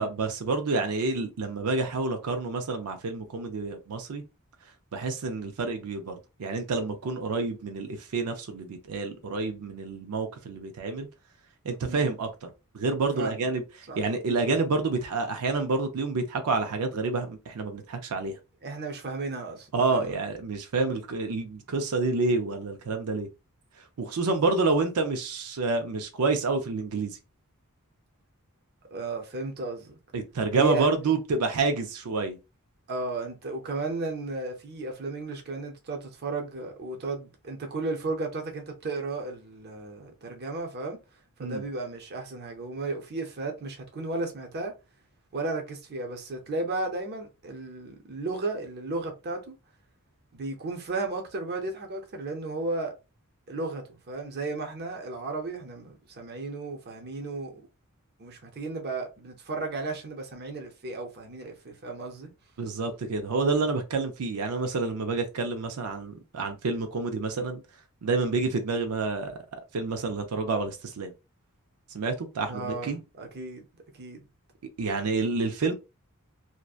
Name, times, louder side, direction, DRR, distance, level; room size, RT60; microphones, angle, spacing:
voice 1, 0.0-4.2 4.9-11.1 11.6-12.5 12.7-13.6 14.0-18.4 19.7-23.3 24.0-27.2 30.1-32.4 41.4-41.7 62.6-67.6 68.0-69.4 69.7-71.1 71.9-73.0 74.8-75.7, right 3 dB, 90° right, 0.5 m, -28 dB
voice 2, 13.1-13.5 13.9-14.0 18.6-20.2 28.9-30.0 30.5-30.9 32.9-41.0 41.4-44.7 45.3-49.5 50.3-52.9 53.5-57.6 58.2-62.3 72.5-73.6 74.0-74.3, right 3 dB, 45° right, 0.6 m, -34 dB
2.6 x 2.1 x 2.3 m
head